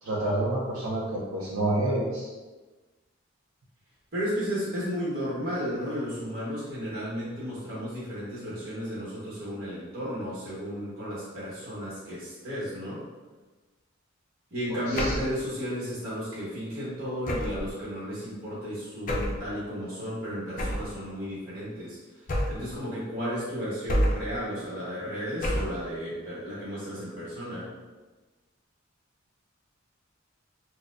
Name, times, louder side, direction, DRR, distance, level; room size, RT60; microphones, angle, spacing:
voice 1, 0.0-2.3 14.9-15.1, right 1 dB, 80° right, -6 dB, 0.6 m, -28 dB
voice 2, 4.1-13.0 14.5-27.7, equal, 45° right, -8 dB, 1.1 m, -34 dB
sound 1, 14.9-15.4 17.2-17.7 19.1-19.4 20.6-20.9 22.3-22.7 23.9-24.4 25.4-25.8, equal, 40° left, 0.5 m, -28 dB
4.1 x 2.1 x 2.5 m, 1.2 s
head